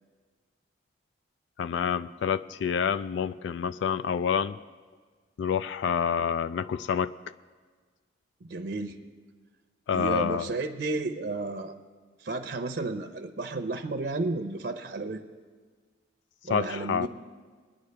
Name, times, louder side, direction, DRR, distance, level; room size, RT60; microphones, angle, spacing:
voice 1, 1.6-4.6 5.4-7.1 9.9-10.5 16.5-17.1, left 7 dB, 85° left, 14 dB, 0.3 m, -28 dB
voice 2, 8.4-9.0 9.9-11.8 12.2-15.2 16.4-17.1, right 2 dB, 65° right, 7 dB, 0.7 m, -32 dB
22.5 x 9.9 x 3.4 m, 1.5 s
head